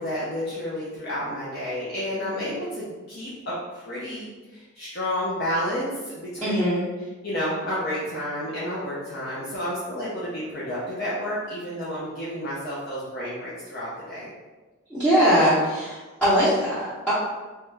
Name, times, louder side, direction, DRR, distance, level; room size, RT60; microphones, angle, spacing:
voice 1, 0.0-6.6 7.2-14.3, equal, 50° left, -9 dB, 0.6 m, -30 dB
voice 2, 6.4-6.8 14.9-17.1, equal, 5° left, -14 dB, 0.7 m, -21 dB
3.1 x 2.3 x 3.2 m, 1.2 s
head